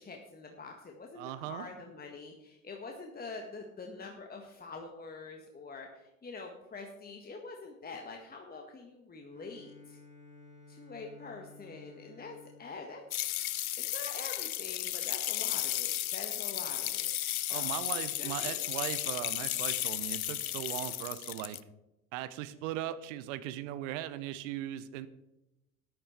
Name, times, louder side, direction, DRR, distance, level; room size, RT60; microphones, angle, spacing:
voice 1, 0.0-10.0 10.7-13.0 13.8-18.6, left 3 dB, 20° left, 2 dB, 1.7 m, -46 dB
voice 2, 1.2-1.6 17.5-21.6 22.1-25.1, right 12 dB, 60° right, 14 dB, 1.0 m, -38 dB
Bowed string instrument, 9.3-14.1, left 3 dB, 15° right, 3.6 m, -56 dB
sound 1, 13.1-21.6, left 13 dB, 85° left, 0.6 m, -34 dB
14.0 x 10.5 x 4.5 m, 0.93 s
figure-of-eight pair, 70°, 41 cm